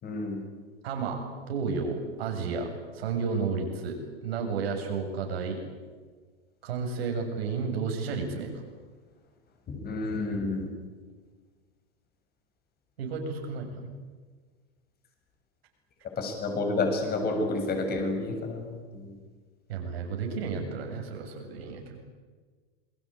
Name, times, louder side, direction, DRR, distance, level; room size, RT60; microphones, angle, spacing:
voice 1, 0.0-0.4 9.8-10.7 16.2-19.0, left 2 dB, 30° left, 4 dB, 7.3 m, -29 dB
voice 2, 0.8-1.2 1.5-5.6 6.6-8.6 13.0-13.9 19.7-22.0, right 5 dB, 70° right, 4 dB, 7.3 m, -32 dB
27.5 x 21.0 x 8.9 m, 1.5 s
hypercardioid pair, 110°, 31 cm